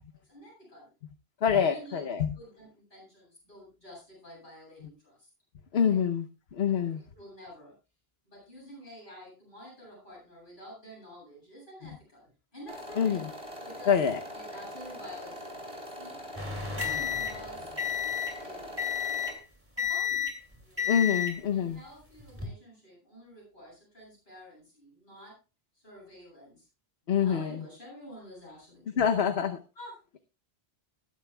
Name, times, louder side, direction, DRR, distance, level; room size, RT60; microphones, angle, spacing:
voice 1, 0.1-0.9 1.6-2.0 2.3-5.3 5.8-6.0 6.7-7.7 8.2-13.3 13.6-14.0 14.3-16.2 16.6-17.7 18.4-19.0 19.8-20.3 20.6-20.9 21.5-25.4 25.8-26.7 27.1-29.3 29.7-30.0, equal, 50° left, -5 dB, 8.3 m, -49 dB
voice 2, 1.4-2.3 5.7-6.2 6.5-7.0 13.0-13.3 13.9-14.2 20.9-21.8 27.1-27.6 29.0-29.6, left 7 dB, 80° left, 7 dB, 1.1 m, -26 dB
sound 1, 12.7-19.3, equal, 30° right, 3.6 m, -42 dB
sound 2, 16.4-18.4 18.8-19.4 19.8-20.4 20.8-21.4 22.2-22.5, left 8 dB, 10° right, 2.5 m, -31 dB
20.5 x 10.5 x 2.3 m, 0.29 s
omnidirectional pair, 1.1 m